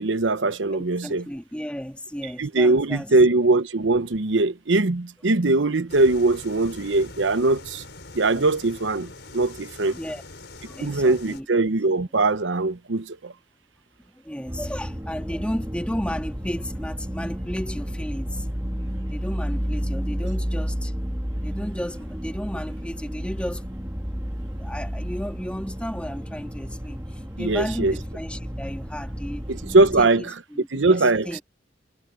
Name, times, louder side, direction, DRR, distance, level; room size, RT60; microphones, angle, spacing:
voice 1, 0.0-1.3 2.4-7.8 8.1-10.0 10.8-13.3 27.4-27.9 29.5-30.3 30.7-31.4, right 2 dB, 85° right, 0.9 m, -21 dB
voice 2, 0.7-3.1 9.9-10.2 10.6-11.5 14.1-18.5 19.1-20.9 21.4-23.7 24.6-29.4 30.0-31.4, equal, 5° left, 2.5 m, -33 dB
sound 1, 5.9-11.4, left 2 dB, 65° left, 5.7 m, -43 dB
sound 2, 14.5-30.0, equal, 15° right, 1.9 m, -31 dB
head